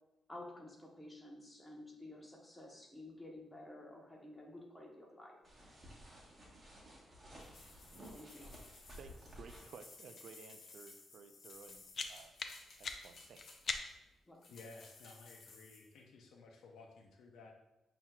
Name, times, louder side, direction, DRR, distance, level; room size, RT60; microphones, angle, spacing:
voice 1, 0.3-5.4 8.1-8.5 14.3-14.4, left 1 dB, 15° left, -1 dB, 0.9 m, -52 dB
sound 1, 5.4-9.8, equal, 30° right, 1.2 m, -55 dB
sound 2, 7.4-13.9 14.4-15.9, left 3 dB, 60° left, 0.8 m, -58 dB
voice 2, 9.0-12.3 12.8-13.6, right 5 dB, 70° right, 8 dB, 0.4 m, -56 dB
sound 3, 11.5-14.2, left 4 dB, 45° left, 0.4 m, -44 dB
voice 3, 14.5-17.5, left 3 dB, 80° left, 2 dB, 0.6 m, -56 dB
7.2 x 2.8 x 2.3 m, 0.92 s
cardioid pair, 100°, 0 cm